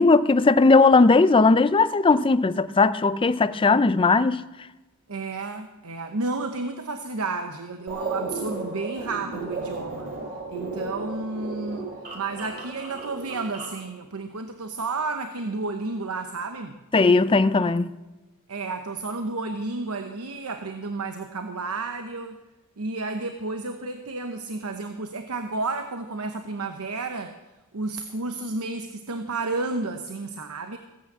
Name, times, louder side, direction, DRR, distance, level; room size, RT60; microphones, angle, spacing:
voice 1, 0.0-4.4 16.9-17.9, left 3 dB, 25° left, 0.4 m, -18 dB
voice 2, 5.1-10.1 10.5-16.8 18.5-22.4 22.8-27.4 27.7-30.8, right 3 dB, 85° right, 0.9 m, -31 dB
sound 1, 7.9-13.8, right 3 dB, 40° right, 4.1 m, -34 dB
16.0 x 8.7 x 7.5 m
head